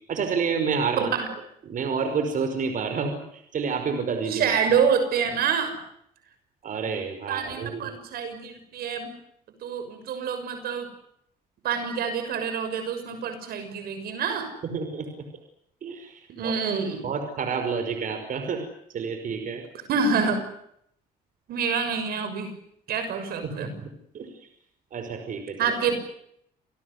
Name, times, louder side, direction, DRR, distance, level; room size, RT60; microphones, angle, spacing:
voice 1, 0.1-1.1 1.6-4.5 6.6-7.9 14.6-15.2 15.8-16.7 17.0-18.6 18.9-19.6 23.4-23.9 24.1-24.3 24.9-25.7, right 5 dB, 60° right, 7 dB, 5.5 m, -29 dB
voice 2, 1.0-1.3 4.3-5.8 7.3-9.1 9.6-10.9 11.6-14.5 16.3-17.0 19.9-20.4 21.5-22.5 22.9-23.7 25.6-25.9, right 6 dB, 75° right, 8 dB, 6.5 m, -27 dB
29.0 x 18.5 x 9.8 m, 0.72 s
cardioid pair, 100°, 16 cm